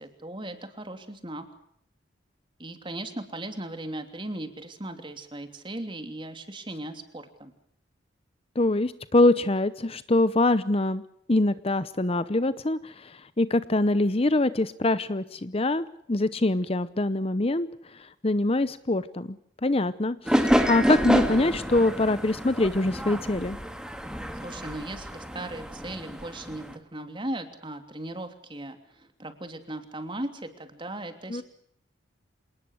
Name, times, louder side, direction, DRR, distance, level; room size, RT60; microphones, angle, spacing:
voice 1, 0.0-1.4 2.6-7.5 24.4-31.4, right 1 dB, 25° right, 7 dB, 3.0 m, -37 dB
voice 2, 8.6-11.0 11.3-17.7 17.9-23.6 31.3-31.4, left 2 dB, 30° left, 14 dB, 0.8 m, -24 dB
sound 1, 20.3-26.8, equal, 5° right, 2.3 m, -28 dB
27.5 x 19.5 x 6.5 m, 0.72 s
head